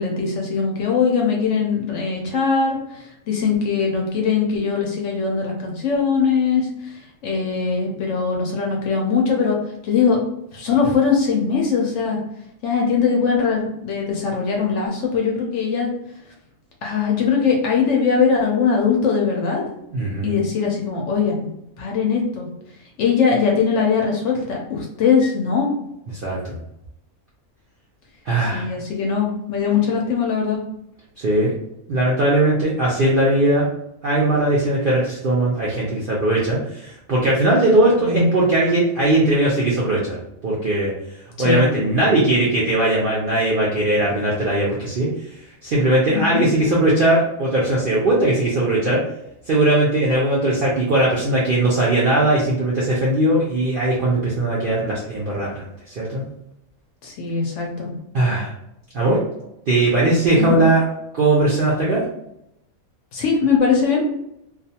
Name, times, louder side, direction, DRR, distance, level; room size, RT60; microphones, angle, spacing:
voice 1, 0.0-9.6 9.8-10.2 10.5-12.2 12.6-15.9 16.8-19.6 20.2-21.5 21.8-22.5 23.0-25.7 28.4-30.6 38.0-38.3 41.4-41.7 46.1-46.5 57.0-57.9 60.4-60.5 63.1-64.0, left 5 dB, 65° left, 0 dB, 0.8 m, -21 dB
voice 2, 19.9-20.3 26.2-26.6 28.3-28.7 31.2-31.5 31.9-33.7 34.0-40.2 40.4-40.9 41.4-45.1 45.6-49.0 49.5-56.3 58.1-58.5 58.9-59.2 59.7-60.8 61.1-62.0, right 1 dB, 65° right, -5 dB, 0.5 m, -19 dB
2.4 x 2.3 x 2.7 m, 0.81 s
omnidirectional pair, 1.5 m